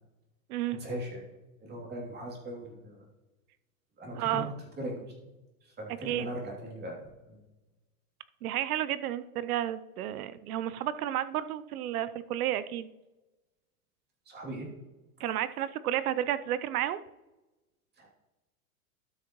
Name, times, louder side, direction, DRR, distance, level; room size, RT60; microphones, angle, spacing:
voice 1, 0.7-1.2 1.6-3.0 4.0-4.4 4.8-5.0 5.6-7.4 14.3-14.7 18.0-18.1, right 1 dB, 20° right, -1 dB, 2.8 m, -39 dB
voice 2, 4.1-4.5 6.0-6.3 8.4-12.9 15.2-17.0, right 12 dB, 80° right, 14 dB, 0.7 m, -31 dB
12.5 x 6.6 x 3.0 m, 1.0 s
hypercardioid pair, 120°, 44 cm